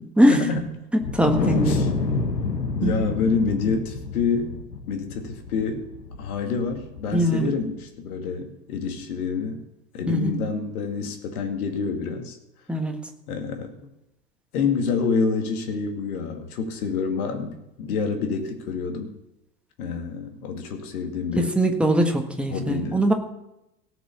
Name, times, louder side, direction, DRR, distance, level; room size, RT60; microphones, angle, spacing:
voice 1, 0.3-0.7 1.6-1.9 2.8-4.6 4.9-5.9 6.2-9.6 9.9-12.4 13.3-13.9 14.5-19.1 19.8-21.5 22.5-23.0, left 5 dB, 60° left, 4 dB, 2.5 m, -27 dB
Wind, 1.0-7.5, left 4 dB, 80° left, 1.4 m, -28 dB
voice 2, 1.1-1.8 2.8-3.1 7.1-7.5 10.1-10.4 12.7-13.0 21.4-23.1, right 1 dB, ahead, 3 dB, 1.6 m, -21 dB
17.5 x 6.2 x 6.8 m, 0.89 s
figure-of-eight pair, 85°, 50 cm